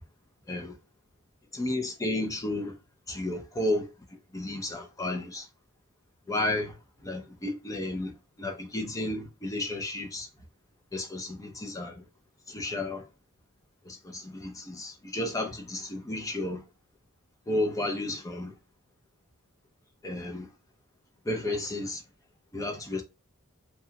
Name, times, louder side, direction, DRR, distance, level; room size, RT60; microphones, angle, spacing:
voice 1, 1.5-2.7 3.1-3.9 4.3-5.5 6.3-10.3 10.9-12.0 12.5-13.0 13.9-16.6 17.5-18.5 20.0-20.5 21.3-22.0 22.5-23.0, left 1 dB, 15° left, 0.5 m, -32 dB
2.8 x 2.3 x 2.7 m
head